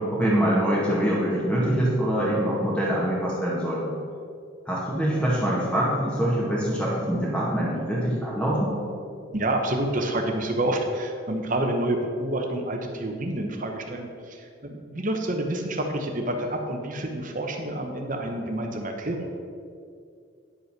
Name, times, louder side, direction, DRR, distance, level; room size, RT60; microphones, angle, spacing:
voice 1, 0.0-3.9 4.7-8.7, equal, 5° left, -6 dB, 1.8 m, -24 dB
voice 2, 9.3-19.3, right 1 dB, 40° right, 3 dB, 1.0 m, -28 dB
10.0 x 5.4 x 5.9 m, 2.4 s
head